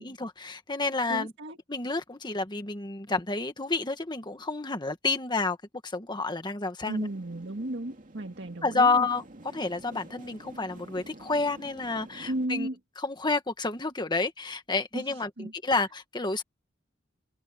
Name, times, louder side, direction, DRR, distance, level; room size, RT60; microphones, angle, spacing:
voice 1, 0.0-1.3 1.7-5.6 5.8-7.1 8.6-9.2 9.5-12.7 13.0-16.4, left 3 dB, 25° left, 1.6 m, -29 dB
voice 2, 1.1-1.6 6.9-9.1 12.3-12.8 14.9-15.5, right 1 dB, 65° right, 2.0 m, -34 dB
sound 1, 6.8-12.5, right 1 dB, 45° right, 2.4 m, -49 dB
open air
head